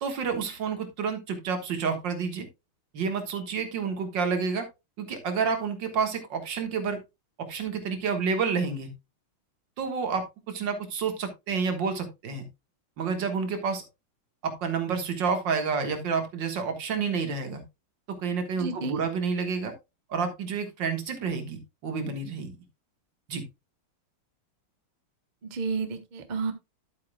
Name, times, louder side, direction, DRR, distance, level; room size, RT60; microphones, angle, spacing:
voice 1, 0.0-2.5 2.9-4.7 5.0-7.0 7.4-8.9 9.8-12.4 13.0-13.8 14.4-17.6 18.1-19.7 20.1-22.5 23.3-23.4, right 5 dB, 60° right, 6 dB, 2.1 m, -29 dB
voice 2, 18.5-19.0 25.4-26.5, right 4 dB, 40° right, 8 dB, 0.6 m, -31 dB
11.0 x 8.4 x 2.2 m, 0.23 s
omnidirectional pair, 2.3 m